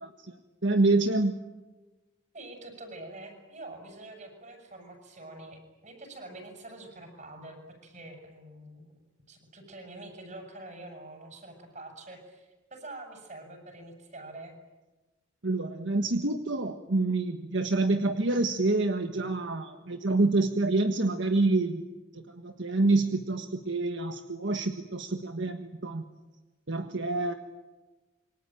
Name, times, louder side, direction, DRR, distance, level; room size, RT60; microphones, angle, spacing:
voice 1, 0.0-1.4 15.4-21.8 22.1-26.0 26.7-27.3, right 2 dB, 70° right, 6 dB, 1.5 m, -27 dB
voice 2, 2.3-9.0 9.3-14.6, right 2 dB, 40° right, 4 dB, 7.5 m, -46 dB
27.5 x 24.0 x 9.1 m, 1.1 s
head